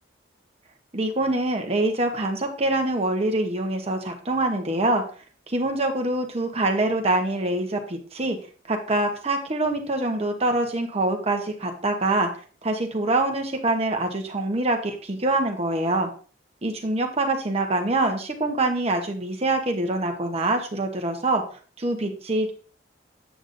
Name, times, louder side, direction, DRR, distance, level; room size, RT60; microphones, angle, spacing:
voice 1, 0.9-5.0 5.5-8.4 8.7-12.3 12.6-16.1 16.6-22.5, right 2 dB, 35° right, 3 dB, 0.9 m, -25 dB
8.1 x 7.9 x 2.5 m, 0.41 s
head